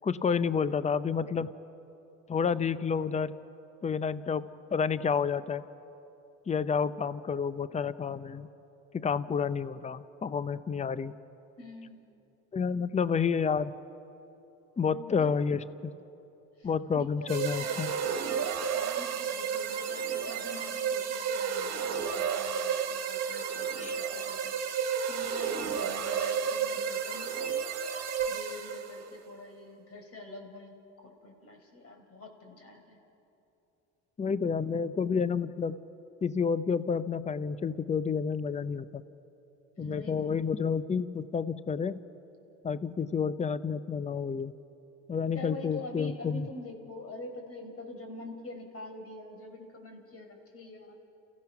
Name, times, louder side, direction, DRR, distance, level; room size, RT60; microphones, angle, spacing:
voice 1, 0.0-1.5 2.3-3.3 3.8-4.4 4.7-5.6 6.5-8.5 8.9-11.1 12.5-13.7 14.8-15.9 16.6-17.9 23.8-23.9 34.2-35.8 36.2-39.0 39.8-42.0 42.6-44.5 45.1-46.5, left 6 dB, 20° left, 15 dB, 0.7 m, -30 dB
voice 2, 11.6-12.0 14.9-15.3 16.6-27.5 28.3-33.0 39.8-40.3 45.3-51.0, left 2 dB, 40° left, 4 dB, 4.3 m, -45 dB
sound 1, 17.3-29.0, right 7 dB, 45° right, 1.9 m, -32 dB
30.0 x 16.0 x 5.9 m, 2.9 s
supercardioid pair, 70°, 35 cm